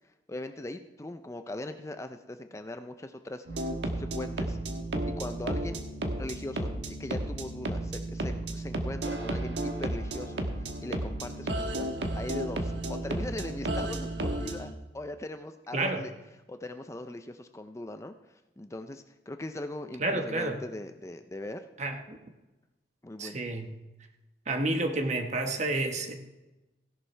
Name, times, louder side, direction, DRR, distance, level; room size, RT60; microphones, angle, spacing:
voice 1, 0.3-4.6 5.2-5.8 6.2-10.4 10.8-11.9 12.1-16.1 16.5-18.1 18.6-21.7 23.0-23.4, left 1 dB, 15° left, 8 dB, 0.5 m, -40 dB
sound 1, 3.5-14.7, right 1 dB, 85° right, 1.3 m, -33 dB
voice 2, 15.7-16.1 20.0-20.6 21.8-22.2 23.2-23.7 24.5-26.1, right 2 dB, 40° right, 5 dB, 1.2 m, -30 dB
16.5 x 11.0 x 3.3 m, 1.1 s
head